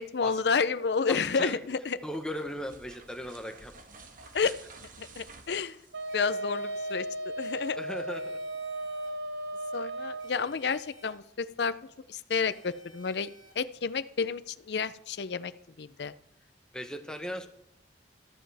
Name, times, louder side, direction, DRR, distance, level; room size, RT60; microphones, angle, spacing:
voice 1, 0.0-2.0 4.3-4.6 5.0-5.8 6.1-7.1 7.4-7.8 9.7-11.7 12.1-13.3 13.6-15.5 15.8-16.1, left 5 dB, 65° left, 14 dB, 0.5 m, -30 dB
voice 2, 1.1-1.6 2.0-3.7 7.7-8.4 16.7-17.5, equal, 5° left, 5 dB, 1.1 m, -37 dB
sound 1, 1.6-6.6, right 4 dB, 50° right, 1.4 m, -52 dB
Wind instrument woodwind instrument, 5.9-10.3, right 1 dB, 75° right, 0.8 m, -35 dB
sound 2, 6.1-6.9 8.1-9.1 10.2-11.1 12.3-13.5, equal, 25° right, 2.3 m, -55 dB
13.5 x 12.5 x 3.5 m, 0.74 s
head